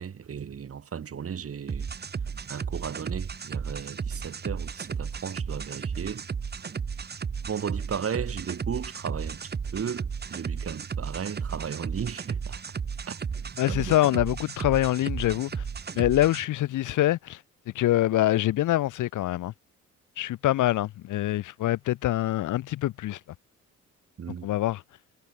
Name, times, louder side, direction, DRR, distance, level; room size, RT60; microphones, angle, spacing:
voice 1, 0.0-1.9 2.5-6.3 7.4-12.6 13.1-13.2 13.7-13.9 24.2-24.5, right 7 dB, 50° right, 4.7 m, -35 dB
sound 1, 1.7-16.4, right 6 dB, 35° right, 1.5 m, -34 dB
voice 2, 13.6-15.6 15.9-17.4 17.7-19.5 20.2-23.2 24.4-24.8, left 14 dB, 80° left, 2.2 m, -25 dB
cardioid pair, 90°, 30 cm